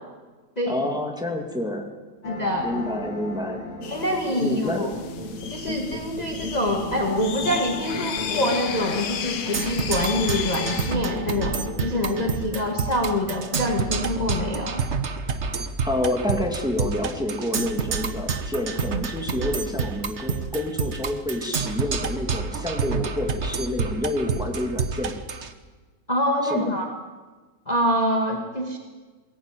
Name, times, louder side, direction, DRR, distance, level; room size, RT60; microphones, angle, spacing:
voice 1, 0.7-1.9 2.6-3.6 4.4-4.8 15.8-25.1 26.5-26.7, left 1 dB, ahead, 2 dB, 2.4 m, -28 dB
sound 1, 2.2-12.6, left 1 dB, 50° left, 2.9 m, -35 dB
voice 2, 2.2-2.8 3.9-4.9 5.5-14.8 26.1-26.9 27.7-28.8, left 1 dB, 20° left, 2 dB, 2.2 m, -25 dB
sound 2, 3.8-11.0, left 7 dB, 75° left, 1.8 m, -34 dB
Percussion, 9.5-25.5, right 5 dB, 45° right, 1.3 m, -29 dB
23.0 x 16.0 x 9.3 m, 1.3 s
omnidirectional pair, 1.9 m